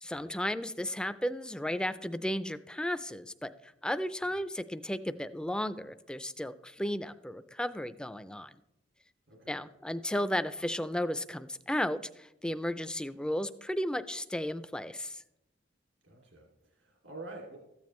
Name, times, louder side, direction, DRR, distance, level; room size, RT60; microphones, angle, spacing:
voice 1, 0.0-8.6 9.5-15.2, left 1 dB, 5° left, 13 dB, 0.3 m, -34 dB
voice 2, 16.0-17.6, right 2 dB, 80° right, -1 dB, 2.4 m, -48 dB
13.5 x 8.7 x 3.1 m, 0.86 s
head